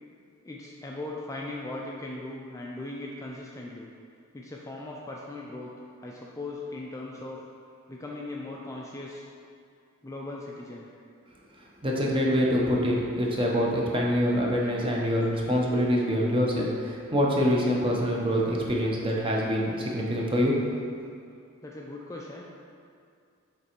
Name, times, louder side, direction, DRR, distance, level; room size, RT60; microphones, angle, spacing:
voice 1, 0.4-3.9 4.3-7.4 7.9-9.2 10.0-10.9 17.0-17.1 21.6-22.4, left 2 dB, 15° left, -2 dB, 0.3 m, -39 dB
voice 2, 11.8-20.6, equal, 25° right, -2 dB, 0.7 m, -25 dB
6.8 x 3.3 x 4.5 m, 2.4 s
head